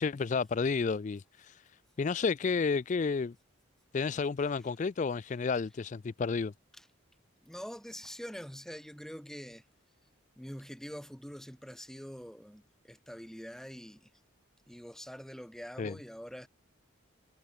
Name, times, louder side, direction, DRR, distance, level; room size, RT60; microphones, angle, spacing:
voice 1, 0.0-1.6 2.0-3.3 3.9-6.5 15.8-15.9, left 5 dB, 35° left, 0.3 m, -31 dB
voice 2, 7.4-9.7 10.4-14.1 14.7-16.5, equal, ahead, 7.0 m, -45 dB
head